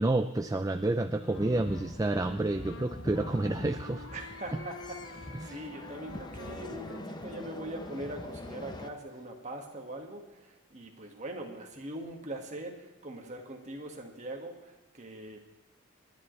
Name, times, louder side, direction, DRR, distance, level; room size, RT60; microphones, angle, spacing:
voice 1, 0.0-4.1 5.4-5.6, right 2 dB, 15° right, 7 dB, 0.4 m, -29 dB
Wind instrument woodwind instrument, 1.2-8.6, left 3 dB, 60° left, 0.7 m, -49 dB
sound 1, 1.3-8.9, left 1 dB, 20° left, 0.7 m, -43 dB
voice 2, 4.1-15.4, right 1 dB, 35° right, 2 dB, 1.8 m, -42 dB
29.0 x 10.5 x 3.3 m, 1.1 s
head